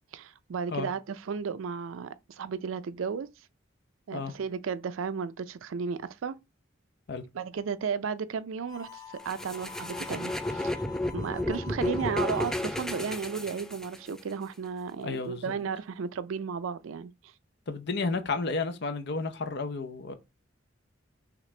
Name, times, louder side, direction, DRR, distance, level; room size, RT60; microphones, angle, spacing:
voice 1, 0.1-3.3 4.1-6.4 7.3-10.8 11.1-17.3, right 6 dB, 85° right, 0.4 m, -34 dB
Harmonica, 8.6-12.7, left 7 dB, 20° left, 0.7 m, -46 dB
sound 1, 9.3-14.2, left 1 dB, 5° left, 0.3 m, -32 dB
voice 2, 15.0-15.5 17.7-20.1, left 4 dB, 55° left, 0.7 m, -32 dB
5.8 x 2.5 x 3.2 m
head